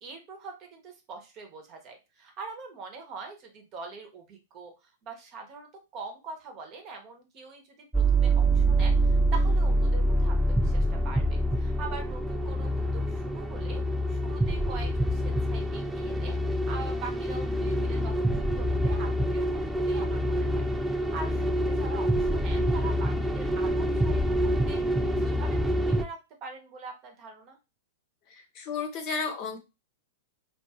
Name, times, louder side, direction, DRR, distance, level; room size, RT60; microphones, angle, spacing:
voice 1, 0.0-4.7 5.0-13.8 14.1-16.4 16.6-20.6 21.0-24.8 25.2-27.6, right 4 dB, 40° right, 3 dB, 0.9 m, -43 dB
sound 1, 7.9-26.0, right 1 dB, 5° right, 0.3 m, -26 dB
voice 2, 28.3-29.6, left 5 dB, 45° left, 5 dB, 0.8 m, -33 dB
2.6 x 2.4 x 2.8 m, 0.26 s
hypercardioid pair, 115°, 0 cm